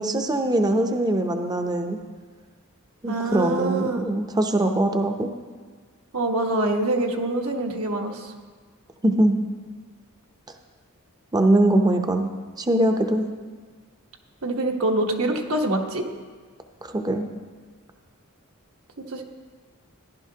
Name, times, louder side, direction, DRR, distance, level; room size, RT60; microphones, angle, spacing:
voice 1, 0.0-2.0 3.0-5.3 9.0-9.4 11.3-12.3 12.6-13.3 16.9-17.3, right 1 dB, 20° right, 5 dB, 0.6 m, -22 dB
voice 2, 3.1-4.1 6.1-8.3 14.4-16.0 19.0-19.2, right 2 dB, 70° right, 2 dB, 1.1 m, -25 dB
14.0 x 11.0 x 2.8 m, 1.5 s
head